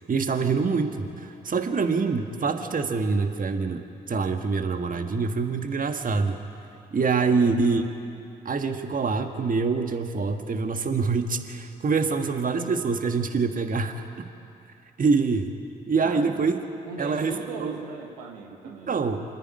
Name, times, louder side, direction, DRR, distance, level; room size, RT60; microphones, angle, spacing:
voice 1, 0.0-6.4 6.9-7.9 8.4-14.3 15.0-15.6 15.9-16.6 17.0-17.8 18.9-19.2, right 4 dB, 45° right, 6 dB, 1.6 m, -25 dB
voice 2, 16.0-16.3 16.8-19.1, right 5 dB, 85° right, 1 dB, 1.6 m, -38 dB
27.0 x 10.0 x 9.8 m, 2.6 s
hypercardioid pair, 40°, 20 cm